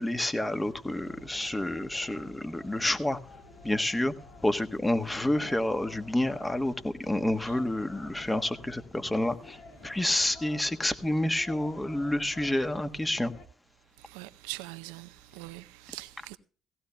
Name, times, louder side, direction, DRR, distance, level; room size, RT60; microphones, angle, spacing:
voice 1, 0.0-3.2 3.6-4.1 4.4-9.6 9.8-13.3, left 1 dB, 15° left, 1.2 m, -29 dB
sound 1, 0.6-13.5, left 2 dB, 75° left, 2.4 m, -50 dB
voice 2, 14.0-16.4, right 18 dB, 85° right, 0.5 m, -42 dB
17.0 x 15.5 x 2.2 m
hypercardioid pair, 55°, 0 cm